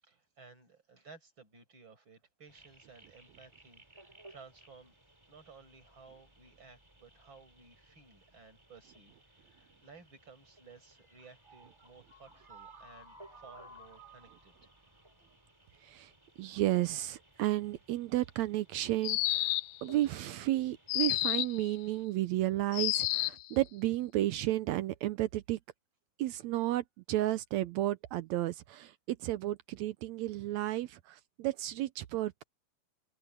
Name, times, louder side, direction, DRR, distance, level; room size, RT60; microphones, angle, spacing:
voice 1, 0.0-4.9 5.3-14.6, right 4 dB, 40° right, 7.9 m, -57 dB
Full Moon with Magpies and Corellas - short, 2.5-22.0, right 1 dB, 10° right, 2.7 m, -59 dB
voice 2, 16.4-19.6 19.8-25.6 26.2-32.4, right 15 dB, 75° right, 1.9 m, -32 dB
sound 1, 19.0-19.8 20.9-21.6 22.7-23.5, left 18 dB, 90° left, 1.4 m, -30 dB
open air
omnidirectional pair, 3.4 m